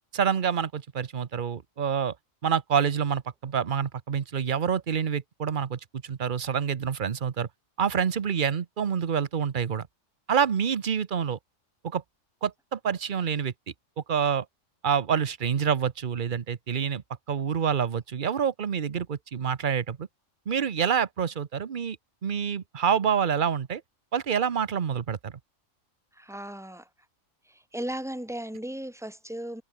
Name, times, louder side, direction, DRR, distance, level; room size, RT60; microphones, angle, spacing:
voice 1, 0.1-2.2 2.4-7.5 7.8-9.9 10.3-11.4 11.8-12.0 12.4-13.5 14.1-14.5 14.8-20.1 20.5-22.0 22.2-23.8 24.1-25.4, right 7 dB, 45° right, 0.9 m, -27 dB
voice 2, 26.2-26.9 27.5-29.6, right 1 dB, ahead, 5.0 m, -36 dB
omnidirectional pair, 1.4 m